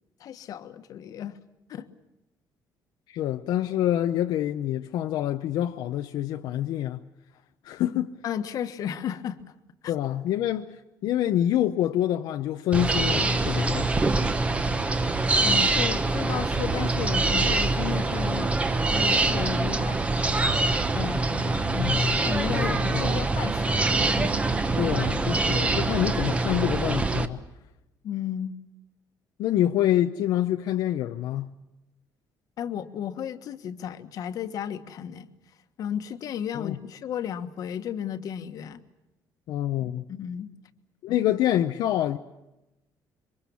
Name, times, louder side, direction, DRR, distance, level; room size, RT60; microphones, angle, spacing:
voice 1, 0.2-1.4 1.7-1.9 8.2-9.4 9.8-9.9 15.4-18.5 18.9-20.0 20.9-21.9 22.2-23.9 24.1-24.3 28.0-28.5 32.6-35.3 35.8-38.8 39.8-40.5, left 9 dB, 55° left, 1.4 m, -33 dB
voice 2, 3.1-7.0 7.6-8.1 9.9-13.9 21.8-22.2 22.5-23.0 24.8-27.4 29.4-31.5 36.5-36.8 39.5-40.0 41.0-42.2, left 12 dB, 75° left, 0.8 m, -26 dB
sound 1, 12.7-27.3, right 3 dB, 15° right, 1.1 m, -24 dB
27.5 x 24.0 x 7.1 m
cardioid pair, 170°, 7 cm